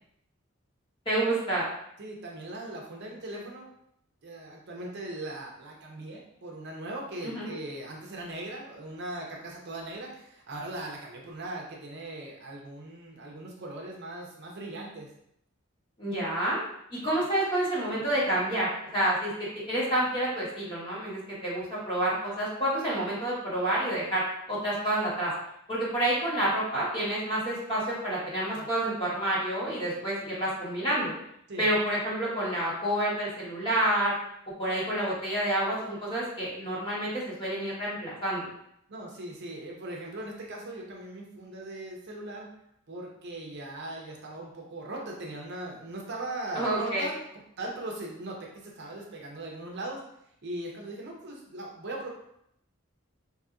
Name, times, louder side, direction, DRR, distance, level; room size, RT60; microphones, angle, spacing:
voice 1, 1.0-1.6 7.2-7.5 16.0-16.6 17.0-19.3 19.7-25.3 25.7-31.1 31.6-34.1 34.6-38.5 46.5-47.1, right 1 dB, 25° left, -8 dB, 1.3 m, -28 dB
voice 2, 2.0-3.7 4.2-15.1 28.5-28.7 31.5-31.7 38.9-42.5 42.9-47.1 47.6-50.0 50.4-52.1, right 2 dB, 55° right, -1 dB, 0.6 m, -39 dB
3.8 x 2.6 x 2.5 m, 0.75 s
head